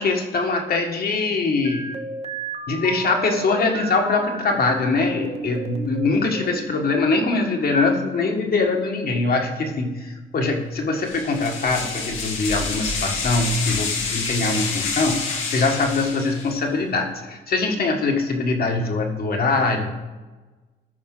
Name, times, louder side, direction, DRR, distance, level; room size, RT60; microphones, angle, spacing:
voice 1, 0.0-1.9 2.7-19.9, left 3 dB, 50° left, 2 dB, 1.6 m, -22 dB
sound 1, 1.6-4.6 5.1-6.7, right 5 dB, 30° right, 0.9 m, -33 dB
sound 2, 11.0-16.6, left 4 dB, 85° left, 1.6 m, -28 dB
14.0 x 5.2 x 3.9 m, 1.2 s
cardioid pair, 90°, 20 cm